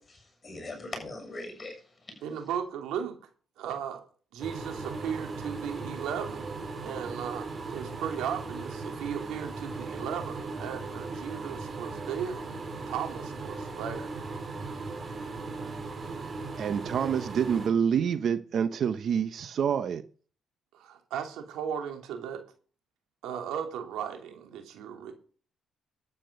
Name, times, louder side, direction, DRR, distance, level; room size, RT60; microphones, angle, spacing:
voice 1, 0.0-2.2, left 2 dB, 30° left, 7.1 m, -41 dB
voice 2, 2.2-3.2 3.6-4.0 4.3-12.4 12.9-14.2 20.7-22.4 23.2-25.1, right 8 dB, 90° right, 2.9 m, -36 dB
sound 1, 4.4-17.7, right 3 dB, 35° right, 4.3 m, -38 dB
voice 3, 16.6-20.0, right 7 dB, 60° right, 0.9 m, -27 dB
12.5 x 8.9 x 5.3 m
cardioid pair, 90°, 0 cm